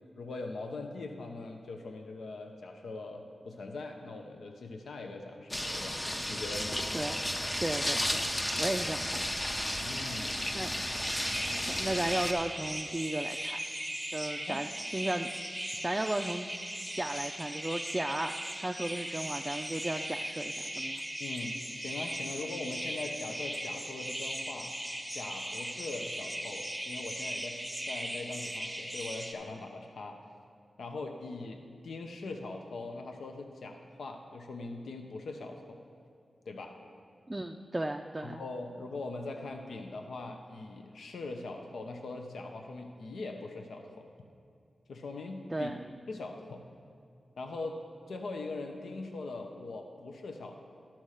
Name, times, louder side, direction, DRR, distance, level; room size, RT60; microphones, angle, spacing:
voice 1, 0.2-6.0 6.3-6.8 9.8-10.4 10.9-11.0 11.3-11.7 14.4-14.6 21.2-24.8 25.1-30.2 30.8-35.8 36.5-36.8 38.2-44.1 44.9-45.7 46.1-46.6 47.4-47.8 48.1-50.5, left 3 dB, 85° left, 4 dB, 0.7 m, -41 dB
sound 1, 5.5-12.3, left 1 dB, 20° left, 0.7 m, -33 dB
voice 2, 7.6-8.3 8.6-9.2 10.5-10.7 11.7-13.6 14.1-15.3 15.8-16.5 17.0-21.0 37.3-38.4 45.5-45.8, right 1 dB, 20° right, 4 dB, 0.4 m, -35 dB
sound 2, 11.0-29.3, equal, ahead, 1.0 m, -38 dB
12.0 x 4.4 x 6.5 m, 2.3 s
cardioid pair, 50°, 0 cm